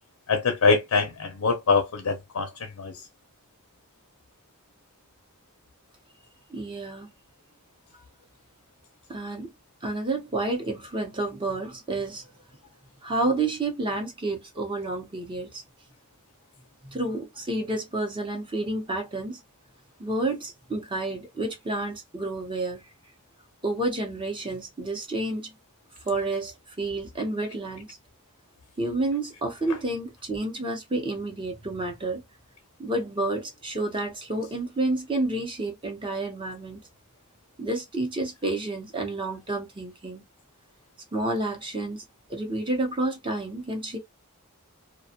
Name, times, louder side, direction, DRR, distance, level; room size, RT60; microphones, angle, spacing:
voice 1, 0.3-3.0, left 4 dB, 85° left, 0.6 m, -24 dB
voice 2, 6.5-7.1 9.1-9.5 9.8-12.3 13.0-15.6 16.8-19.4 20.0-22.9 23.6-25.5 26.0-28.0 28.8-32.2 32.8-36.8 37.6-40.2 41.1-42.0 42.3-44.0, right 2 dB, 25° right, 0.8 m, -30 dB
2.5 x 2.2 x 2.7 m
head